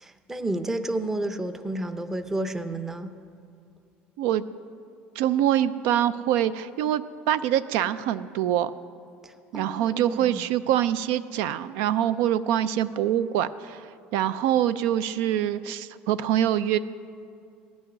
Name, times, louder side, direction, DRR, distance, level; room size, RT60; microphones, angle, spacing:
voice 1, 0.0-3.1 9.2-10.5, right 1 dB, 10° right, 9 dB, 0.6 m, -31 dB
voice 2, 5.2-8.7 9.5-16.8, right 11 dB, 75° right, 14 dB, 0.4 m, -25 dB
15.0 x 6.3 x 9.8 m, 2.5 s
cardioid pair, 150°, 4 cm